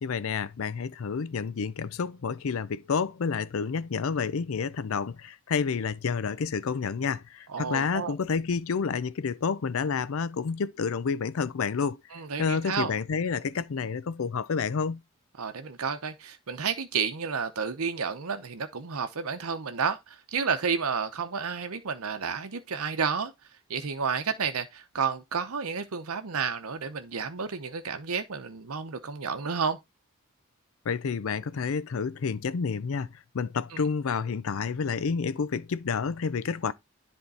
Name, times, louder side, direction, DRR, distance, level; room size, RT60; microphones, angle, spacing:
voice 1, 0.0-12.0 12.4-15.0 30.9-33.1 33.3-36.7, left 5 dB, 70° left, 0.4 m, -29 dB
voice 2, 7.5-8.1 12.1-12.9 15.4-23.3 23.7-29.8 33.7-33.8, right 6 dB, 80° right, 0.8 m, -31 dB
10.5 x 3.6 x 4.1 m
head